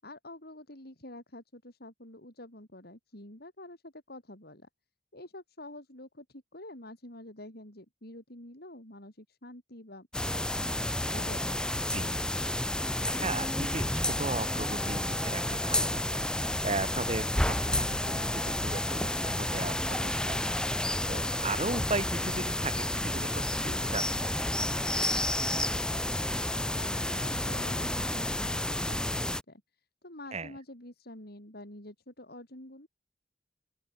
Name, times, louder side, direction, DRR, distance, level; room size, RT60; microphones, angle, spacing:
voice 1, 0.0-4.7 5.1-10.1 10.3-11.8 25.4-29.6 30.0-32.9, left 1 dB, 60° left, 7.5 m, -48 dB
sound 1, 10.1-29.4, left 1 dB, 5° left, 1.0 m, -30 dB
voice 2, 12.8-24.4 30.3-30.5, right 3 dB, 40° right, 3.4 m, -37 dB
open air
head